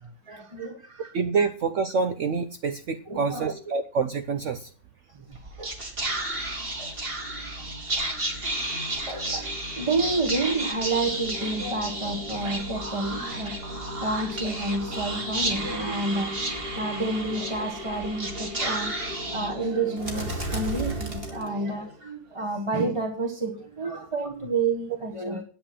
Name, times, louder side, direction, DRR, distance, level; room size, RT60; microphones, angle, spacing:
voice 1, 0.0-1.5 3.1-3.6 5.1-5.7 6.1-6.2 6.8-7.7 9.1-25.4, right 3 dB, 20° right, 1.1 m, -30 dB
voice 2, 1.1-4.7 23.9-24.0, right 4 dB, 60° right, 1.0 m, -27 dB
Whispering, 5.3-21.9, right 1 dB, 40° right, 2.6 m, -32 dB
10.0 x 8.0 x 7.6 m
omnidirectional pair, 1.6 m